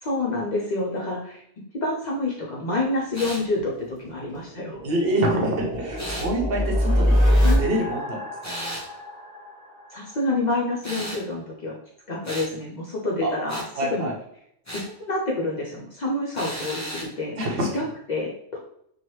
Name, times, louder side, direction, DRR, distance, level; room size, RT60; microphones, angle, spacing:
voice 1, 0.0-1.4 1.8-4.8 7.4-7.6 9.9-11.8 12.1-13.6 13.9-14.1 15.0-17.5 17.7-17.8 18.1-18.6, left 2 dB, 55° left, -3 dB, 0.5 m, -28 dB
sound 1, 3.1-3.5 6.0-6.3 8.4-8.9 10.8-11.2 12.2-12.5 13.5-13.7 14.6-14.9 16.3-17.1, equal, 15° left, 0.8 m, -34 dB
sound 2, 3.6-10.4, equal, 25° right, 0.8 m, -25 dB
voice 2, 4.8-7.2 7.5-8.5 13.2-13.3 13.7-14.2 17.4-17.9, right 1 dB, 60° right, 0 dB, 0.9 m, -26 dB
2.9 x 2.3 x 3.1 m, 0.71 s
omnidirectional pair, 1.1 m